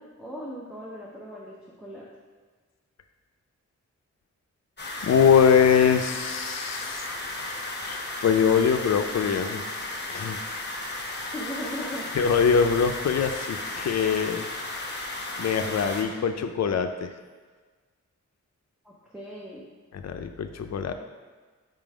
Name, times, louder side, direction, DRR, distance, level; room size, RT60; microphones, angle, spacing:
voice 1, 0.0-2.0 11.3-12.3 18.8-19.7, equal, 5° right, -6 dB, 0.8 m, -38 dB
sound 1, 4.8-16.0, left 2 dB, 35° left, 1.0 m, -34 dB
voice 2, 5.0-7.0 7.8-9.6 10.1-10.4 12.2-14.5 15.4-17.1 19.9-20.9, left 7 dB, 60° left, 7 dB, 0.5 m, -23 dB
5.3 x 3.8 x 4.9 m, 1.4 s
wide cardioid pair, 155°, 29 cm